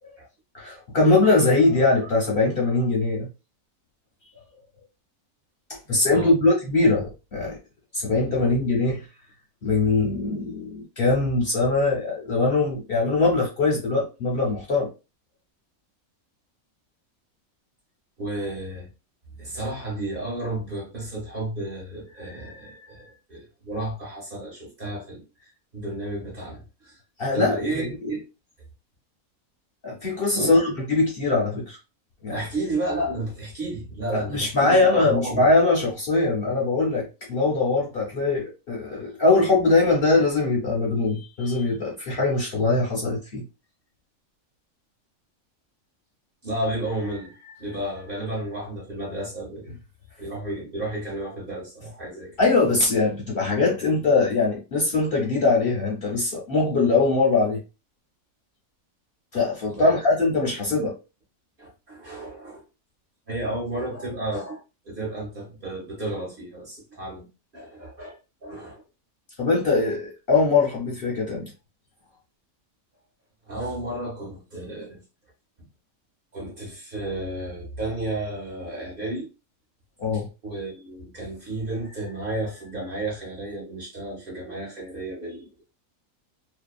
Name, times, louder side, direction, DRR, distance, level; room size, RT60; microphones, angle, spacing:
voice 1, 0.5-3.3 5.7-7.6 7.9-9.0 9.6-14.9 27.2-28.1 29.8-31.8 32.2-32.4 34.1-43.4 52.4-57.6 59.3-60.9 69.4-71.5 80.0-80.3, left 3 dB, 50° left, 0.8 m, -22 dB
voice 2, 18.2-18.9 19.4-27.0 27.3-28.2 30.4-30.6 32.3-35.5 46.4-49.8 50.2-52.4 59.7-60.0 61.6-62.6 63.3-67.3 67.5-68.8 73.5-75.0 76.3-79.3 80.1-85.6, right 1 dB, 45° right, 1.0 m, -32 dB
2.7 x 2.2 x 2.3 m
omnidirectional pair, 1.5 m